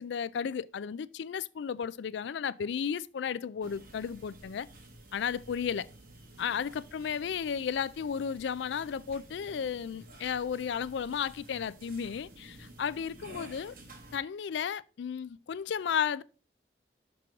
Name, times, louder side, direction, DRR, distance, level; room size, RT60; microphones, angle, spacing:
voice 1, 0.0-4.7 5.1-5.9 6.4-13.7 14.1-16.2, left 7 dB, 70° left, 0.3 m, -34 dB
sound 1, 3.6-14.2, right 1 dB, 50° right, 1.3 m, -52 dB
6.1 x 6.0 x 3.6 m
head